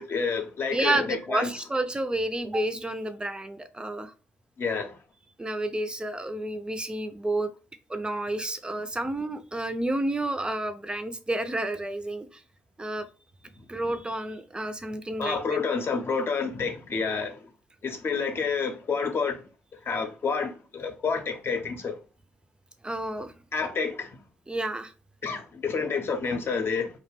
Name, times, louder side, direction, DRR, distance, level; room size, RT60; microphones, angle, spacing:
voice 1, 0.0-1.5 4.6-5.0 13.6-13.7 15.2-17.5 17.8-19.4 19.8-22.0 23.5-24.2 25.2-27.0, left 5 dB, 50° left, 0.7 m, -29 dB
voice 2, 0.7-4.1 5.4-7.5 7.9-12.4 12.8-13.1 13.7-15.4 22.8-23.3 24.5-24.9, right 1 dB, 15° right, 0.4 m, -30 dB
2.4 x 2.1 x 3.3 m
hypercardioid pair, 45°, 5 cm